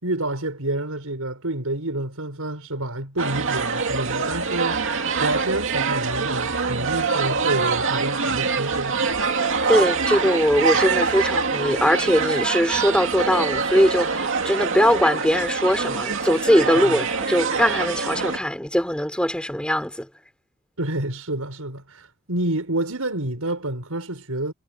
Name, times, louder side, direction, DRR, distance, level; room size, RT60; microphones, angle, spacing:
voice 1, 0.0-9.1 16.8-17.0 20.8-24.5, right 1 dB, 85° right, 5.8 m, -28 dB
sound 1, 3.2-18.4, right 5 dB, 65° right, 2.5 m, -24 dB
voice 2, 9.7-20.1, equal, 5° left, 4.8 m, -21 dB
head